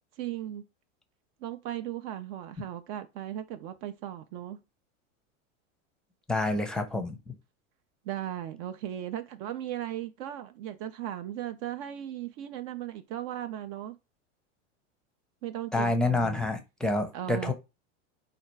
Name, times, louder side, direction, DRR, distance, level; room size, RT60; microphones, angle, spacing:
voice 1, 0.2-0.6 1.4-4.6 8.0-14.0 15.4-16.4 17.1-17.5, right 12 dB, 50° right, 0.5 m, -37 dB
voice 2, 6.3-7.3 15.7-17.5, left 2 dB, ahead, 0.6 m, -28 dB
4.3 x 2.4 x 4.5 m
hypercardioid pair, 110°, 38 cm